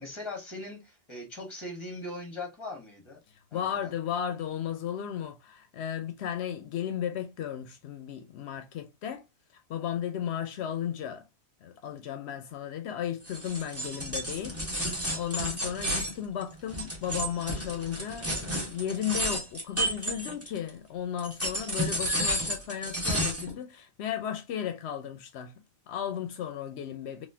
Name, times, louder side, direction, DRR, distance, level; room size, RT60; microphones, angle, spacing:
voice 1, 0.0-3.2 3.5-3.9, left 2 dB, 25° left, 1.5 m, -40 dB
voice 2, 3.5-9.2 9.7-11.2 11.6-14.6 14.9-25.5 25.9-27.3, left 9 dB, 85° left, 0.8 m, -34 dB
sound 1, 13.2-20.7 21.2-23.5, equal, 15° right, 1.2 m, -32 dB
4.1 x 2.4 x 2.7 m
omnidirectional pair, 1.1 m